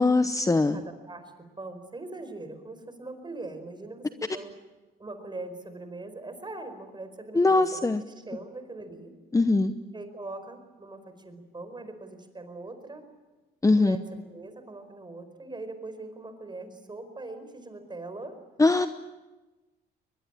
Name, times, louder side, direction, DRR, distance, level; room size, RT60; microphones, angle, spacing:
voice 1, 0.0-0.8 7.3-8.0 9.3-9.8 13.6-14.0 18.6-18.9, left 3 dB, 15° left, 10 dB, 0.9 m, -21 dB
voice 2, 0.7-4.5 5.0-9.1 9.9-13.0 13.8-18.4, right 2 dB, 25° right, 9 dB, 4.8 m, -41 dB
22.5 x 21.5 x 8.9 m, 1.1 s
cardioid pair, 90°, 20 cm